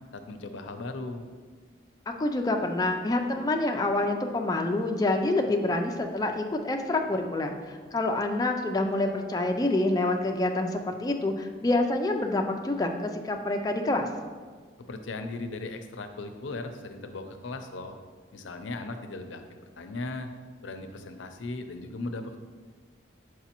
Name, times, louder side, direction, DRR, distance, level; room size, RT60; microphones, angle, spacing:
voice 1, 0.1-1.3 14.9-18.0 18.3-20.3 20.6-22.4, left 2 dB, 85° left, 7 dB, 0.5 m, -37 dB
voice 2, 2.1-14.1, left 2 dB, 20° left, 3 dB, 0.3 m, -27 dB
6.9 x 4.7 x 2.9 m, 1.5 s
head